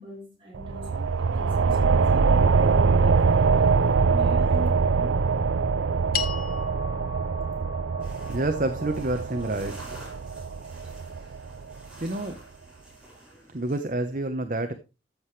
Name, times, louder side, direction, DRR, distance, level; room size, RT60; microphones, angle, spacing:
voice 1, 0.0-3.3 4.0-5.2, left 1 dB, 25° right, 6.7 m, -40 dB
sound 1, 0.5-11.8, right 5 dB, 90° right, 0.5 m, -23 dB
sound 2, 6.1-10.6, left 7 dB, 50° left, 1.1 m, -38 dB
sound 3, 8.0-13.8, right 1 dB, 5° right, 5.7 m, -49 dB
voice 2, 8.3-9.7 12.0-12.4 13.5-14.7, right 2 dB, 45° right, 0.9 m, -28 dB
14.0 x 7.7 x 3.3 m
head